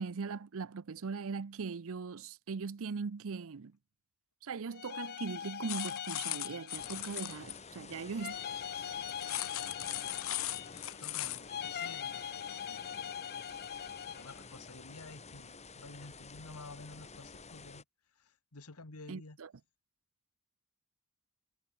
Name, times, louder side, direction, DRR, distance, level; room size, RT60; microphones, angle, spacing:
voice 1, 0.0-3.8 4.4-8.4 19.1-19.5, right 5 dB, 65° right, 0.6 m, -40 dB
sound 1, 4.7-7.5 8.2-11.0 11.5-14.4, left 9 dB, 45° left, 0.5 m, -42 dB
sound 2, 5.7-7.6 9.1-11.4, left 15 dB, 65° left, 1.2 m, -38 dB
sound 3, 6.7-17.8, left 4 dB, 30° left, 4.8 m, -51 dB
voice 2, 11.0-12.2 12.6-13.1 14.1-17.8 18.2-19.4, left 3 dB, 80° left, 1.8 m, -51 dB
head